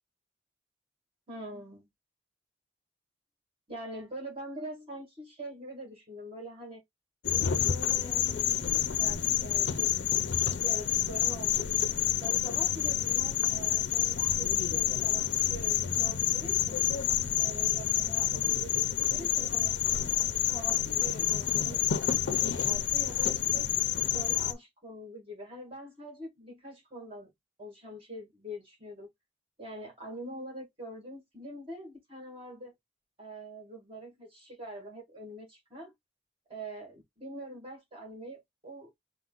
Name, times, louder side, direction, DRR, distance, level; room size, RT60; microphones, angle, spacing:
voice 1, 1.3-1.8 3.7-6.8 7.3-8.6 8.9-9.9 10.6-11.9 12.2-16.8 17.4-19.7 20.1-21.8 22.2-23.7 24.1-27.3 27.6-29.1 29.6-32.7 33.2-35.9 36.5-38.9, right 1 dB, 35° right, 2.1 m, -44 dB
sound 1, 7.2-24.5, left 11 dB, 85° left, 0.5 m, -28 dB
4.6 x 2.2 x 3.9 m
head